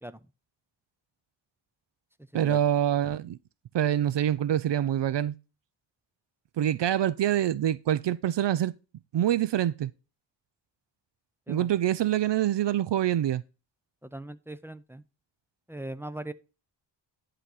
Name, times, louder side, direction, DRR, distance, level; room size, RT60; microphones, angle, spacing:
voice 1, 2.3-3.4 3.7-5.3 6.6-8.7 9.1-9.9 11.5-13.4, right 11 dB, 65° right, 0.5 m, -25 dB
voice 2, 14.0-15.0 15.7-16.3, right 1 dB, 5° right, 0.5 m, -39 dB
11.0 x 3.9 x 4.8 m
wide cardioid pair, 100°, 46 cm